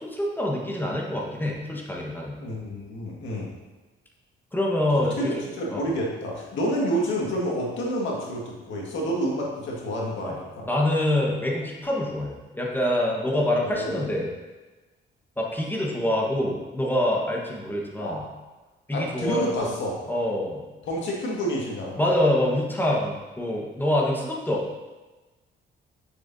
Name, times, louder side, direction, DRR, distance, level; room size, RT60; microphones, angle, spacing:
voice 1, 0.0-2.3 4.5-5.4 5.7-5.9 10.2-10.4 10.6-14.3 15.4-18.2 18.9-19.6 20.1-20.6 22.0-24.8, left 1 dB, 10° left, -2 dB, 1.4 m, -26 dB
voice 2, 2.4-3.5 4.9-10.7 13.3-14.1 18.0-18.2 18.9-20.0 20.9-22.0, equal, 70° left, -3 dB, 1.9 m, -29 dB
6.7 x 6.7 x 2.8 m, 1.2 s
cardioid pair, 90°, 20 cm